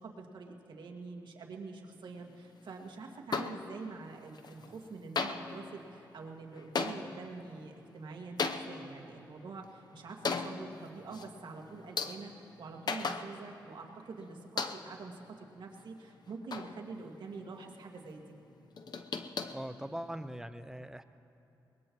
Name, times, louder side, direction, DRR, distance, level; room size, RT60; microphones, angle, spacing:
voice 1, 0.0-18.2, right 4 dB, 65° right, 0 dB, 2.1 m, -46 dB
sound 1, 3.3-4.1 4.3-4.9 5.1-13.7 14.0-14.1 14.6-15.1 15.6-17.3 17.6-17.7 18.0-18.1 18.4-20.4, left 4 dB, 55° left, 0.9 m, -39 dB
voice 2, 19.5-21.0, right 1 dB, 5° right, 10 dB, 0.8 m, -41 dB
22.5 x 20.0 x 3.1 m, 2.9 s
supercardioid pair, 55°, 8 cm